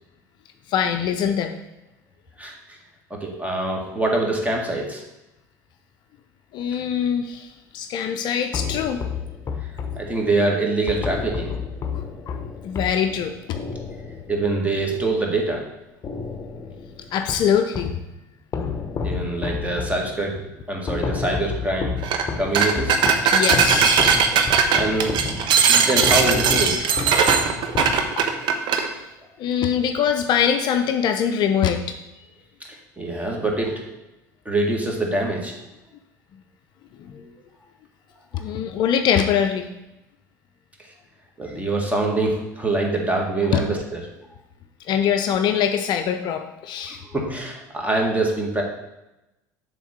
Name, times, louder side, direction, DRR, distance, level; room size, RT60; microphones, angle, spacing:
voice 1, 0.7-1.6 6.5-7.5 7.7-9.0 11.9-12.4 12.6-13.6 17.1-18.0 23.3-24.1 25.7-25.8 28.2-28.3 28.7-29.0 29.4-32.0 37.0-37.2 38.3-39.7 43.5-43.6 44.9-47.0, left 8 dB, 50° left, 6 dB, 0.5 m, -23 dB
voice 2, 2.4-2.8 3.1-5.0 9.9-11.5 14.3-15.6 19.0-20.4 20.7-22.0 22.4-23.0 24.7-25.2 25.7-27.0 32.7-34.0 34.5-35.5 38.3-38.4 41.4-44.0 46.8-48.6, right 2 dB, 15° right, 1 dB, 1.8 m, -24 dB
sound 1, 8.5-15.7 16.0-18.1 18.5-28.4, left 5 dB, 30° left, 0.9 m, -31 dB
sound 2, 22.0-22.3 22.5-28.9, right 6 dB, 50° right, 0.8 m, -19 dB
7.0 x 3.7 x 6.0 m, 0.94 s
figure-of-eight pair, 65°, 10 cm